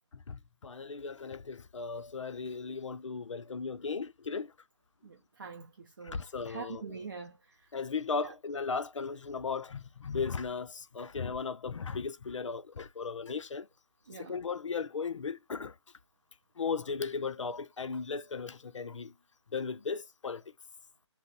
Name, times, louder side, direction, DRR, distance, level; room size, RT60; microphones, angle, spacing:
voice 1, 0.3-4.5 6.0-6.8 7.7-13.7 14.2-15.7 16.6-19.1 19.5-20.4, left 5 dB, 80° left, 0.4 m, -36 dB
voice 2, 5.0-7.7 8.2-8.3 14.1-14.4, right 5 dB, 45° right, 0.5 m, -45 dB
2.6 x 2.0 x 3.6 m
figure-of-eight pair, 155°, 16 cm